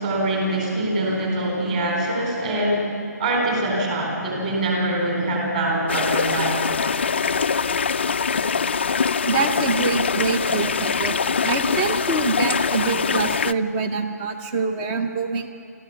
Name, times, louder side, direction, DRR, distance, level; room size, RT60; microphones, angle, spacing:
voice 1, 0.0-2.9 3.2-6.6, right 1 dB, 25° right, -1 dB, 4.0 m, -23 dB
sound 1, 5.9-13.5, left 5 dB, 40° left, 0.4 m, -23 dB
voice 2, 9.3-11.2 11.4-15.5, right 4 dB, 10° right, 6 dB, 0.6 m, -25 dB
28.5 x 13.0 x 7.0 m, 2.6 s
hypercardioid pair, 175°, 9 cm